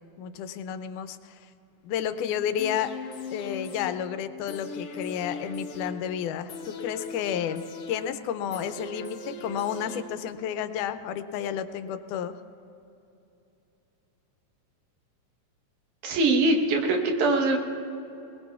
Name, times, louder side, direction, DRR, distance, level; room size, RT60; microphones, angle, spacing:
voice 1, 0.2-1.5 1.8-2.9 3.3-12.4, left 9 dB, 90° left, 11 dB, 2.1 m, -31 dB
sound 1, 2.6-10.6 10.9-11.0, left 3 dB, 65° left, 1.5 m, -39 dB
voice 2, 16.0-17.6, right 2 dB, 75° right, 3 dB, 2.6 m, -22 dB
21.0 x 20.5 x 2.4 m, 2.8 s
omnidirectional pair, 3.5 m